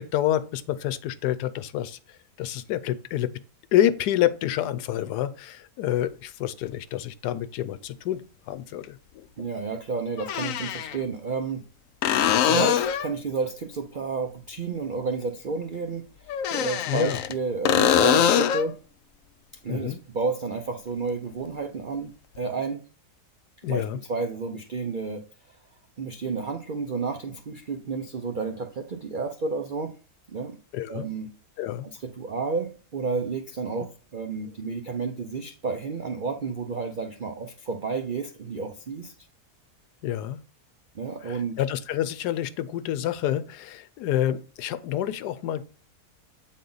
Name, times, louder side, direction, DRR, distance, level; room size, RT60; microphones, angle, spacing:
voice 1, 0.0-2.0 2.4-3.3 3.7-9.3 16.9-17.2 19.7-20.0 23.6-24.0 30.7-31.1 31.6-31.9 33.8-33.9 40.0-40.4 41.2-45.6, left 12 dB, 85° left, 1.2 m, -28 dB
sound 1, 6.7-6.8 8.8-8.9 10.2-11.0 12.0-13.2 16.3-17.3 17.7-18.7 22.4-22.5, left 9 dB, 70° left, 0.8 m, -23 dB
voice 2, 9.4-11.6 12.4-18.8 19.6-22.8 23.7-25.6 26.0-29.9 30.3-30.6 30.9-31.3 31.9-39.1 40.9-41.6, right 4 dB, 70° right, 0.4 m, -31 dB
8.3 x 4.1 x 3.9 m
omnidirectional pair, 1.7 m